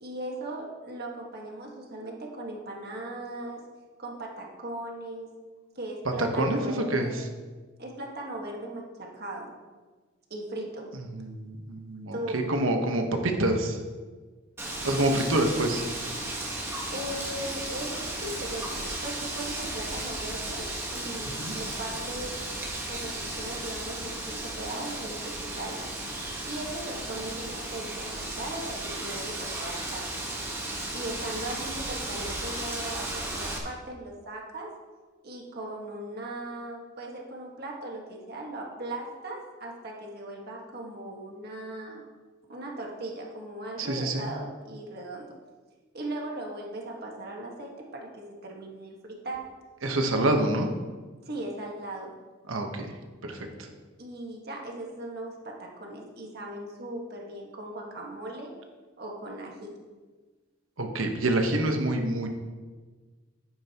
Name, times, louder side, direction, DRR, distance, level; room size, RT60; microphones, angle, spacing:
voice 1, 0.0-3.6 4.0-5.3 5.8-7.2 7.8-9.5 10.3-10.9 12.1-12.4 16.9-22.3 22.9-25.9 26.4-30.3 30.9-34.7 35.2-42.1 42.5-45.4 45.9-49.5 51.3-52.2 54.0-58.5 59.0-59.7, right 1 dB, 50° right, -1 dB, 1.6 m, -38 dB
voice 2, 6.2-7.2 11.1-13.8 14.8-15.8 21.4-21.5 43.8-44.3 49.8-50.7 52.5-52.9 53.2-53.7 60.8-62.3, right 1 dB, 90° right, 4 dB, 1.2 m, -27 dB
Wind, 14.6-33.6, right 1 dB, 15° right, 1.4 m, -35 dB
10.5 x 9.2 x 3.0 m, 1.4 s
head